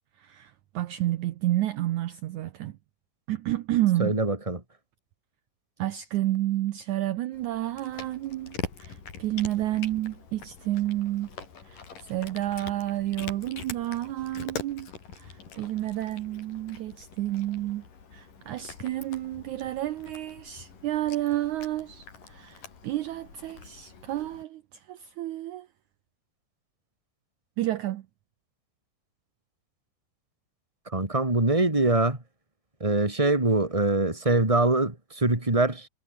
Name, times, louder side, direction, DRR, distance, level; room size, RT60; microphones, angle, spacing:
voice 1, 0.2-2.8 3.3-4.1 5.8-11.3 11.6-14.9 15.2-17.8 18.1-25.7 27.6-28.1, right 14 dB, 70° right, 2.1 m, -30 dB
voice 2, 4.0-4.6 30.9-32.2 32.8-35.9, right 2 dB, 10° right, 3.5 m, -23 dB
Cat, 7.3-24.4, left 6 dB, 75° left, 6.0 m, -44 dB
omnidirectional pair, 3.9 m